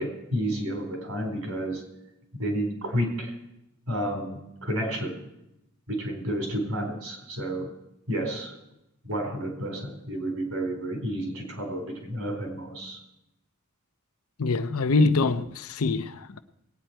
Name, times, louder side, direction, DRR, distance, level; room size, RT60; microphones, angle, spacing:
voice 1, 0.0-1.8 2.3-3.4 3.9-5.2 5.9-7.7 8.1-8.5 9.0-13.0, right 1 dB, 80° right, 4.1 m, -31 dB
voice 2, 14.4-16.4, left 3 dB, 75° left, 0.7 m, -24 dB
20.0 x 8.9 x 4.5 m
head